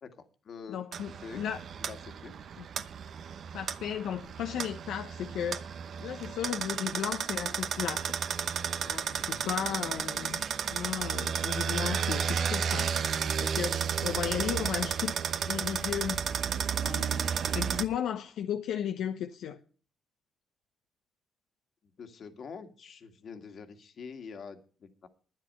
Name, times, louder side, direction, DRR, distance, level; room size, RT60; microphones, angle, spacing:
voice 1, 0.0-0.8 1.2-1.4 1.8-2.3 21.8-25.1, left 6 dB, 55° left, 1.9 m, -45 dB
voice 2, 0.7-1.6 2.6-2.7 3.5-5.7 6.0-8.1 8.9-10.4 10.7-15.2 15.5-16.2 16.8-17.2 17.5-19.6, left 9 dB, 80° left, 0.8 m, -35 dB
sound 1, 0.9-17.8, right 7 dB, 60° right, 0.9 m, -32 dB
11.5 x 9.9 x 5.4 m
cardioid pair, 90°, 0 cm